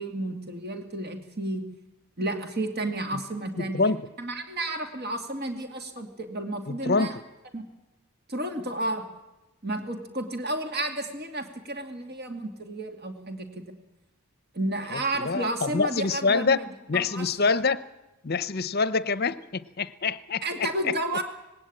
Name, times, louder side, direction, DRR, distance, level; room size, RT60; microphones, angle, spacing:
voice 1, 0.0-1.6 2.2-3.9 4.2-7.2 7.5-7.7 8.3-9.1 9.6-13.7 14.5-16.7 16.9-17.3 20.4-21.2, right 1 dB, 45° right, 5 dB, 2.4 m, -32 dB
voice 2, 3.6-4.0 6.7-7.1 14.9-16.6 16.9-17.8 18.2-20.9, left 4 dB, 45° left, 15 dB, 0.7 m, -26 dB
19.5 x 17.5 x 8.8 m, 1.0 s
head